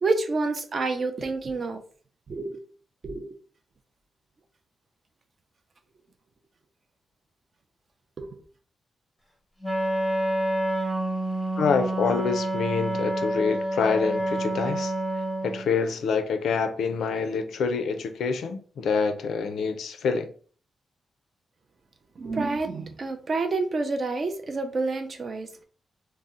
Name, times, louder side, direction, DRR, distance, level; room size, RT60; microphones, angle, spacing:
voice 1, 0.0-1.8 2.3-2.6 3.0-3.3 8.2-8.3 22.2-25.6, right 3 dB, 40° right, 0.4 m, -28 dB
Wind instrument woodwind instrument, 9.6-15.7, right 1 dB, ahead, 0.8 m, -28 dB
voice 2, 11.6-14.9 15.4-20.3, left 5 dB, 85° left, 0.4 m, -26 dB
2.7 x 2.0 x 3.6 m
wide cardioid pair, 165°, 0 cm